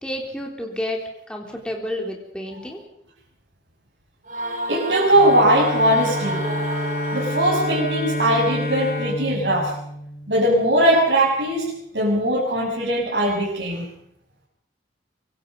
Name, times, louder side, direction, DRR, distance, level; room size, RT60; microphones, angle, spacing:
voice 1, 0.0-1.0 1.3-2.8, left 1 dB, 5° left, 0 dB, 3.6 m, -30 dB
sound 1, 4.3-8.1, right 2 dB, 45° right, 3.3 m, -31 dB
voice 2, 4.7-6.4 7.1-9.7 10.3-13.9, right 1 dB, 75° right, -6 dB, 6.7 m, -20 dB
Bowed string instrument, 5.1-10.8, left 1 dB, 55° left, 3.6 m, -28 dB
25.0 x 24.0 x 5.5 m, 0.72 s
head